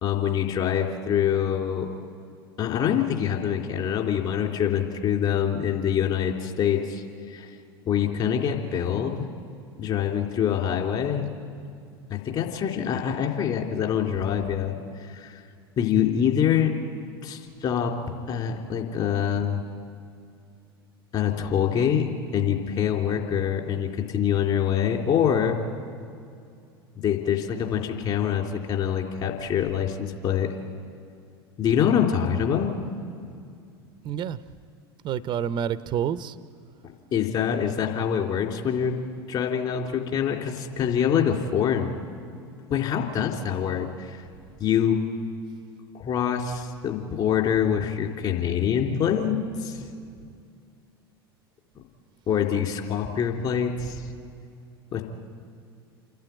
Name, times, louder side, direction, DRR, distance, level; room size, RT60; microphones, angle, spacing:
voice 1, 0.0-1.9 2.6-7.5 7.9-9.3 9.8-11.3 12.1-15.4 15.8-16.8 17.2-17.9 18.3-19.6 21.1-25.6 27.0-30.5 31.6-32.9 37.1-39.0 39.3-41.9 42.7-44.2 44.6-45.0 45.9-49.8 52.3-54.0 54.9-55.0, left 8 dB, 40° left, 2 dB, 3.5 m, -25 dB
voice 2, 34.0-34.4 35.0-36.4, right 9 dB, 35° right, 14 dB, 0.6 m, -28 dB
28.5 x 12.0 x 9.1 m, 2.4 s
figure-of-eight pair, 80°, 13 cm